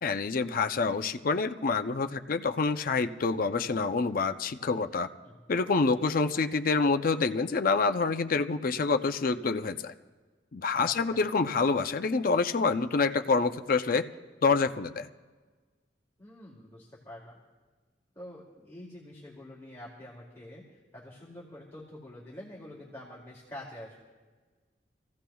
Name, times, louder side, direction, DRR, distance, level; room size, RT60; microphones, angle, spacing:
voice 1, 0.0-5.1 5.5-9.9 10.5-14.1 14.4-15.1, left 4 dB, 50° left, 9 dB, 0.5 m, -27 dB
voice 2, 10.8-11.2 16.2-17.4 18.1-24.0, left 1 dB, 15° left, -5 dB, 2.5 m, -46 dB
27.5 x 15.5 x 2.3 m, 1.4 s
head